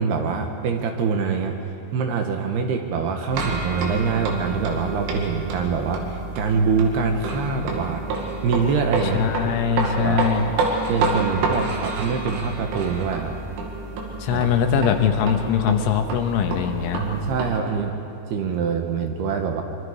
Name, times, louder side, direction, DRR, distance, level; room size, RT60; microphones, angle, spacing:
voice 1, 0.0-1.5 1.9-8.0 8.4-9.2 9.4-10.3 10.9-13.4 14.3-14.4 16.9-18.0 18.3-19.6, right 5 dB, 70° right, 4 dB, 2.9 m, -24 dB
sound 1, 3.3-17.6, right 3 dB, 85° right, 4.7 m, -29 dB
voice 2, 9.1-10.4 14.2-17.0, left 7 dB, 85° left, 5 dB, 3.7 m, -21 dB
25.0 x 24.0 x 5.0 m, 2.9 s
omnidirectional pair, 5.5 m